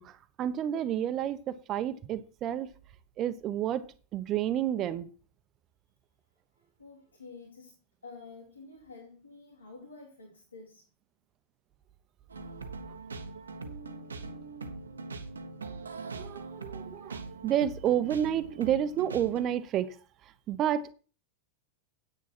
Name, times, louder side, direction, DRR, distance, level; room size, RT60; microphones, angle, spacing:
voice 1, 0.0-2.7 3.2-3.8 4.1-5.1 16.1-20.0 20.5-20.9, right 10 dB, 35° right, 0.9 m, -30 dB
voice 2, 6.6-7.8 8.0-10.9, left 3 dB, 80° left, 2.4 m, -49 dB
sound 1, 12.3-19.4, right 3 dB, 75° right, 1.1 m, -42 dB
9.5 x 9.0 x 4.4 m
figure-of-eight pair, 90°, 0 cm